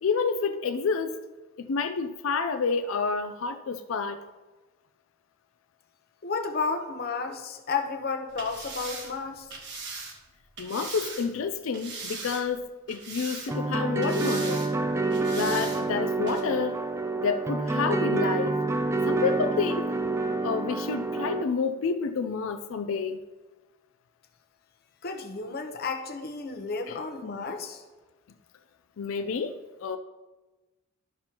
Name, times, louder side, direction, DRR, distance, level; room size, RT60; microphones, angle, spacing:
voice 1, 0.0-1.2 1.6-4.2 10.6-14.7 15.3-16.8 17.2-18.6 19.1-20.0 20.4-23.2 26.9-27.0 27.2-27.5 29.0-30.0, left 5 dB, 75° left, 9 dB, 0.4 m, -29 dB
voice 2, 6.2-9.5 25.0-27.8, left 4 dB, 50° left, 5 dB, 0.8 m, -32 dB
sound 1, 8.3-11.3 11.7-12.6 12.9-13.7 14.0-14.7 15.1-15.8 16.3-16.4, right 4 dB, 55° right, 1.3 m, -39 dB
sound 2, 13.5-21.4, right 3 dB, 15° right, 0.3 m, -28 dB
12.0 x 6.0 x 2.9 m, 1.2 s
head